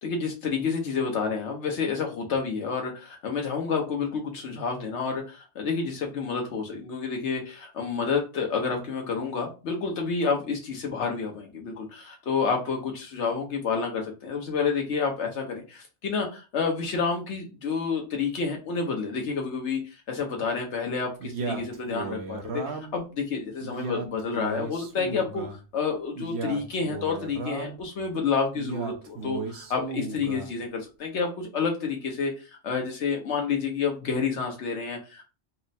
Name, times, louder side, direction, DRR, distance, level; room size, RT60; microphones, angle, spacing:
voice 1, 0.0-35.3, left 5 dB, 80° left, 1 dB, 1.1 m, -29 dB
Male speech man speaking, 21.2-23.0 23.6-25.6 26.1-27.8 28.5-30.5, right 4 dB, 70° right, 1.0 m, -35 dB
4.4 x 2.0 x 4.0 m, 0.31 s
omnidirectional pair, 1.2 m